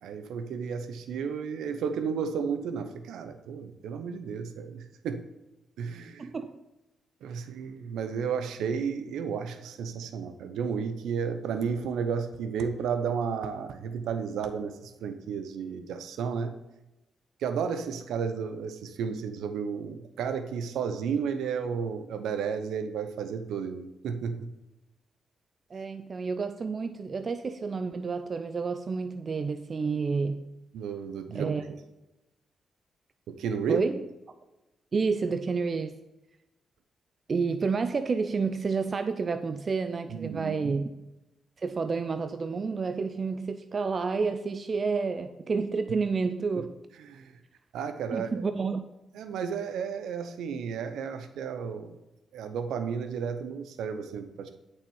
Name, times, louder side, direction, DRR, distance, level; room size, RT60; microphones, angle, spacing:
voice 1, 0.0-5.3 5.8-6.3 7.2-16.5 17.4-24.5 30.7-31.8 33.3-33.8 40.1-40.8 47.0-47.3 47.7-48.4 49.1-52.0 52.3-54.6, right 6 dB, 80° right, 9 dB, 0.8 m, -33 dB
voice 2, 6.2-6.6 25.7-30.4 31.3-31.7 33.7-34.0 34.9-36.0 37.3-40.9 41.6-46.7 48.1-48.8, right 4 dB, 50° right, 9 dB, 0.6 m, -30 dB
8.8 x 6.6 x 5.4 m, 0.99 s
hypercardioid pair, 40°, 0 cm